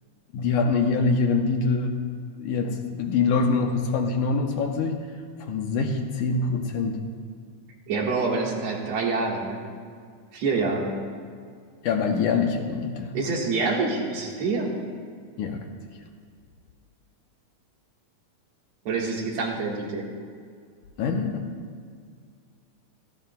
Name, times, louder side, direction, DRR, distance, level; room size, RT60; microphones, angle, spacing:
voice 1, 0.3-1.9 2.4-5.0 5.4-7.0 11.8-13.2 15.4-15.6 21.0-21.5, left 4 dB, 75° left, 3 dB, 2.1 m, -24 dB
voice 2, 7.9-9.6 10.3-10.9 13.1-14.7 18.9-20.1, right 3 dB, 55° right, -1 dB, 2.4 m, -26 dB
18.0 x 16.0 x 2.2 m, 2.1 s
omnidirectional pair, 4.0 m